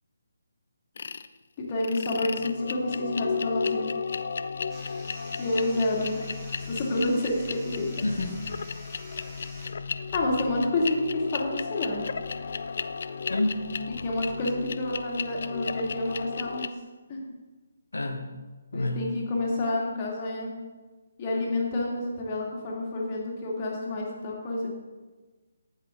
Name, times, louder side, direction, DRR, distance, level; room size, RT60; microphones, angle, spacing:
sound 1, 1.0-1.3 1.8-16.7, left 5 dB, 50° left, 0.4 m, -34 dB
voice 1, 1.6-3.8 5.4-6.2 6.7-7.9 10.1-12.0 14.0-16.7 17.1-17.2 18.7-20.5 21.2-24.7, left 2 dB, 30° left, -2 dB, 2.4 m, -29 dB
sound 2, 4.7-9.7, right 1 dB, 15° right, 1.9 m, -49 dB
voice 2, 8.0-8.4 13.3-13.8 17.9-18.3 18.7-19.1, left 2 dB, 70° left, 4 dB, 1.3 m, -28 dB
11.0 x 7.5 x 3.8 m, 1.3 s
figure-of-eight pair, 145°, 0 cm